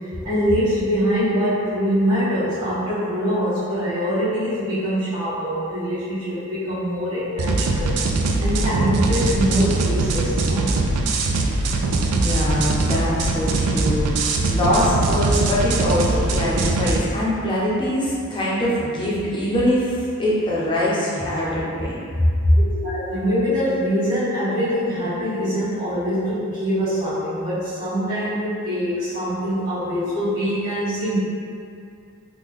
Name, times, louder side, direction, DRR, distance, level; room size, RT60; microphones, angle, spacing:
voice 1, 0.2-7.9 8.4-10.7 22.5-31.2, equal, 70° right, -16 dB, 1.2 m, -23 dB
sound 1, 7.4-17.0, right 2 dB, 90° right, 0.4 m, -21 dB
voice 2, 12.1-14.1 14.5-22.0, left 1 dB, 20° left, -7 dB, 0.6 m, -23 dB
3.6 x 2.2 x 3.1 m, 2.4 s
head